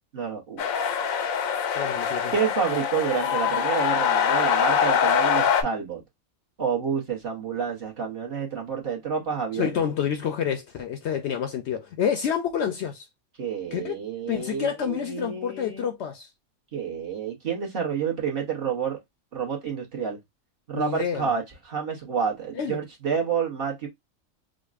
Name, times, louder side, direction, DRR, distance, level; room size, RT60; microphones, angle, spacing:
voice 1, 0.1-0.6 2.3-6.0 6.6-9.8 13.4-15.9 16.7-19.0 19.3-20.2 20.7-23.9, right 6 dB, 50° right, 1.1 m, -29 dB
sound 1, 0.6-5.6, left 8 dB, 90° left, 1.0 m, -24 dB
voice 2, 1.8-2.3 9.5-13.1 13.7-14.0 14.3-16.3 20.7-21.3 22.6-22.8, left 8 dB, 65° left, 0.7 m, -28 dB
5.0 x 2.1 x 2.3 m
omnidirectional pair, 1.4 m